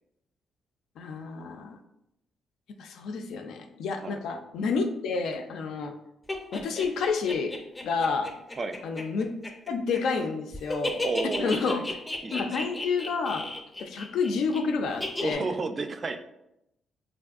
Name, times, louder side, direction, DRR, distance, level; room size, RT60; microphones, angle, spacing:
voice 1, 1.0-1.8 2.8-5.9 6.5-7.6 7.8-8.3 8.8-9.3 9.7-11.0 11.4-11.8 12.3-13.5 13.8-15.5, left 4 dB, 75° left, 6 dB, 0.3 m, -29 dB
sound 1, 6.3-10.3 10.5-14.6 15.0-15.3, left 2 dB, 20° left, 0.5 m, -33 dB
voice 2, 11.0-11.8 12.2-12.5 15.2-16.2, right 4 dB, 35° right, 7 dB, 0.3 m, -32 dB
3.5 x 2.5 x 2.3 m, 0.83 s
cardioid pair, 90°, 0 cm